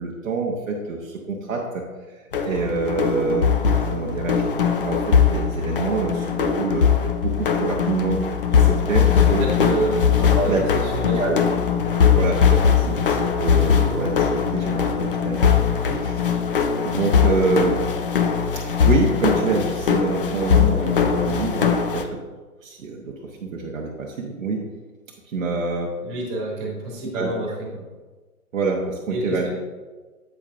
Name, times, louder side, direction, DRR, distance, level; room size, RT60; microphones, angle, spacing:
voice 1, 0.0-1.8 2.4-3.6 3.9-4.4 4.8-6.9 7.2-8.2 8.5-9.5 10.4-10.6 11.2-11.4 12.1-15.5 16.0-16.1 16.8-17.8 18.5-22.2 22.6-24.6 25.3-25.9 27.1-27.6 28.5-29.5, right 4 dB, 60° right, -1 dB, 1.1 m, -26 dB
sound 1, 2.3-22.0, left 7 dB, 40° left, 0.5 m, -20 dB
voice 2, 9.1-11.4 12.8-13.0 15.7-16.3 26.0-27.8 29.1-29.5, right 1 dB, 20° right, -3 dB, 2.3 m, -29 dB
8.4 x 8.3 x 2.5 m, 1.3 s
figure-of-eight pair, 140°, 45 cm